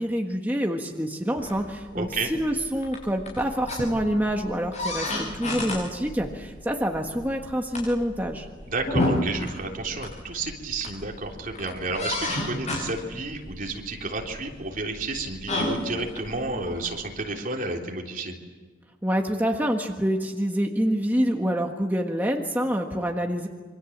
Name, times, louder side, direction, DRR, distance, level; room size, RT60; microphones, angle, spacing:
voice 1, 0.0-8.5 19.0-23.5, equal, 10° right, 2 dB, 1.5 m, -26 dB
sound 1, 1.4-17.1, left 1 dB, 40° left, 7.6 m, -33 dB
voice 2, 1.9-2.3 8.7-18.3, right 2 dB, 50° right, 0 dB, 3.6 m, -31 dB
27.0 x 24.5 x 7.4 m, 1.4 s
head